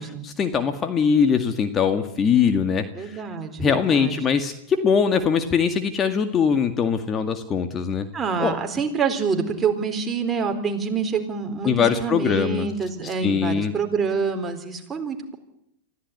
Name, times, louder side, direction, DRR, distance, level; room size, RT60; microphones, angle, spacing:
voice 1, 0.2-3.2 3.6-8.1 8.4-8.6 11.6-12.7 13.0-13.7, left 6 dB, 25° left, 8 dB, 1.9 m, -22 dB
voice 2, 2.9-4.2 8.1-15.4, right 5 dB, 20° right, 4 dB, 4.1 m, -26 dB
24.0 x 15.5 x 9.8 m, 0.76 s
hypercardioid pair, 110°, 0 cm